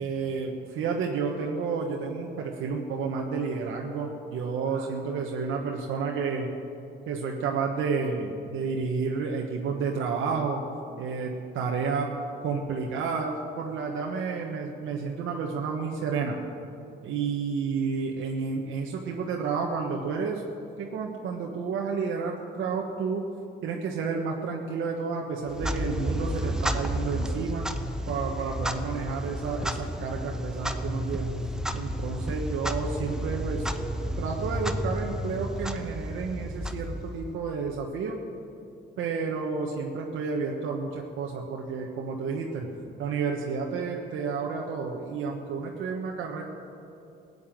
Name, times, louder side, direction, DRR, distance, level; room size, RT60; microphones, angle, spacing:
voice 1, 0.0-6.5 7.1-10.6 11.0-12.1 12.4-16.4 17.0-20.4 20.8-23.2 23.6-27.6 28.1-31.3 31.7-33.7 34.2-38.2 39.0-42.7 43.0-46.4, right 5 dB, 85° right, 0 dB, 1.3 m, -31 dB
Clock, 25.4-37.4, equal, 5° right, 0.9 m, -32 dB
16.0 x 8.2 x 9.2 m, 2.6 s
cardioid pair, 90°, 20 cm